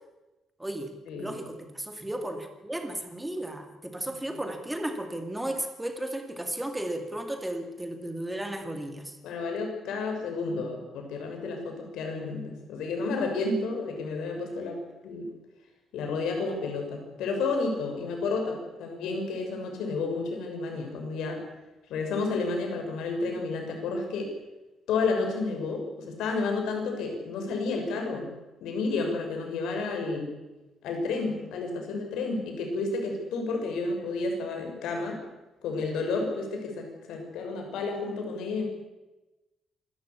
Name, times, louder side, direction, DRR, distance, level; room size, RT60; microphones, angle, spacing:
voice 1, 0.6-9.2, right 1 dB, 5° right, 6 dB, 2.3 m, -34 dB
voice 2, 9.2-15.3 15.9-21.4 21.9-24.3 24.9-28.3 28.6-30.3 30.8-35.2 35.6-38.6, left 3 dB, 85° left, 2 dB, 6.7 m, -31 dB
26.0 x 13.5 x 8.4 m, 1.1 s
cardioid pair, 175°, 0 cm